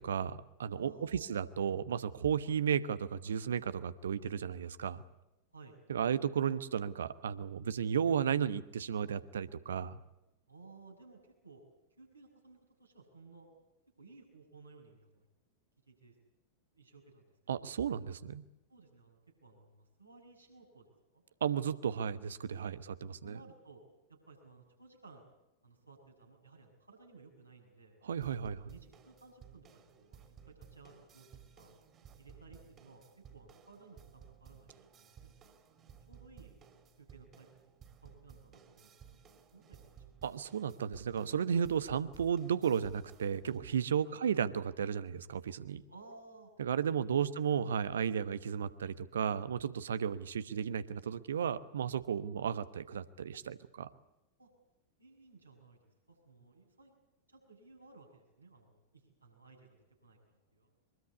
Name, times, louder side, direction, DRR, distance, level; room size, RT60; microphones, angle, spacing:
voice 1, 0.0-5.0 5.9-10.0 17.5-18.4 21.4-23.4 28.0-28.7 40.2-45.8 46.6-53.9, right 8 dB, 65° right, 15 dB, 1.1 m, -34 dB
voice 2, 0.7-1.4 5.5-5.8 10.5-11.6 12.0-13.5 14.0-15.3 15.9-16.2 16.7-17.3 17.6-17.8 18.7-21.2 23.2-23.8 24.1-25.3 25.6-28.0 28.4-31.7 32.2-33.0 33.3-35.1 35.4-35.5 36.1-36.6 37.0-37.5 38.0-39.2 39.5-40.0 44.0-44.2 45.9-46.5 47.2-47.4 54.4-54.5 55.0-57.0 57.3-59.8 60.0-60.7, right 3 dB, 85° right, -1 dB, 6.9 m, -58 dB
sound 1, 28.2-43.6, right 7 dB, 30° right, 3.3 m, -58 dB
23.5 x 22.0 x 8.5 m, 0.95 s
figure-of-eight pair, 90°, 0 cm